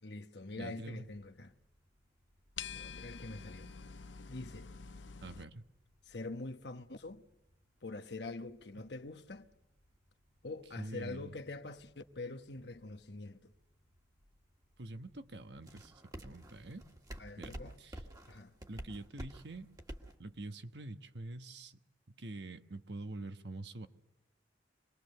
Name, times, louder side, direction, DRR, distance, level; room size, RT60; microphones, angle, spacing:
voice 1, 0.0-1.5 2.7-3.7 4.3-4.7 6.1-7.2 7.8-9.5 10.4-13.5 17.2-17.8 18.3-18.5, left 2 dB, 65° left, 1.2 m, -45 dB
voice 2, 0.5-1.0 5.2-5.7 10.8-11.3 14.8-16.8 17.4-18.0 18.7-19.7 20.2-21.8 22.1-23.9, right 2 dB, 65° right, 1.2 m, -46 dB
sound 1, 0.7-20.2, right 1 dB, 20° right, 1.8 m, -55 dB
sound 2, 2.6-5.4, left 6 dB, 85° left, 0.8 m, -47 dB
25.5 x 20.5 x 6.8 m
head